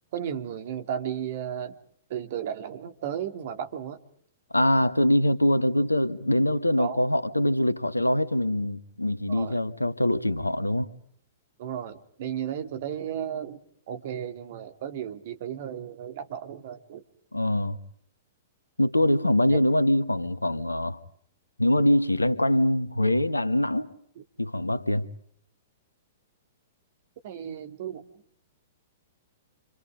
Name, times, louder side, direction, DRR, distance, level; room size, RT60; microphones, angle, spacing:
voice 1, 0.1-1.8 2.1-4.0 6.8-7.0 9.3-9.6 11.6-13.6 13.9-17.0 27.2-28.0, right 9 dB, 50° right, 2.9 m, -34 dB
voice 2, 4.5-10.9 17.3-17.8 18.8-21.0 21.6-23.9 24.4-25.1, left 1 dB, 85° left, 1.5 m, -23 dB
29.5 x 27.0 x 5.1 m
figure-of-eight pair, 110°, 0 cm